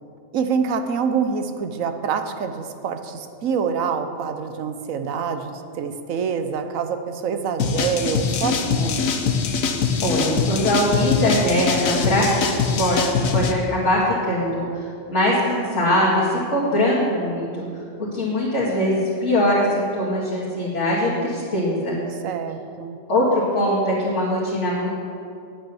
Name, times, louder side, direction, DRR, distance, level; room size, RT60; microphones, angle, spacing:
voice 1, 0.3-9.4 22.2-23.0, right 6 dB, 85° right, 8 dB, 1.2 m, -26 dB
sound 1, 7.6-13.5, left 6 dB, 85° left, 1.3 m, -23 dB
voice 2, 10.0-17.6 18.1-22.0 23.1-23.2 23.5-24.9, left 1 dB, 60° left, -8 dB, 2.3 m, -22 dB
9.1 x 8.9 x 6.9 m, 2.5 s
omnidirectional pair, 1.4 m